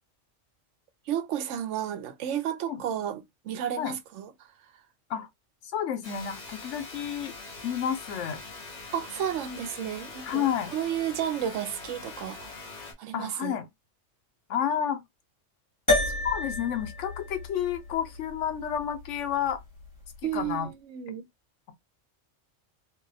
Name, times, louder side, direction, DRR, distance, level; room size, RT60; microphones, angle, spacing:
voice 1, 1.1-4.3 8.9-12.5 13.0-13.6 20.2-21.2, right 10 dB, 80° right, 0.9 m, -32 dB
voice 2, 5.7-7.3 7.6-8.4 10.2-10.7 13.1-13.7 14.5-15.0 16.2-19.6 20.2-20.7, left 9 dB, 80° left, 1.0 m, -30 dB
sound 1, 6.0-12.9, left 3 dB, 40° left, 1.0 m, -43 dB
sound 2, 15.9-20.4, left 2 dB, 15° left, 1.4 m, -32 dB
2.9 x 2.6 x 2.6 m
omnidirectional pair, 1.2 m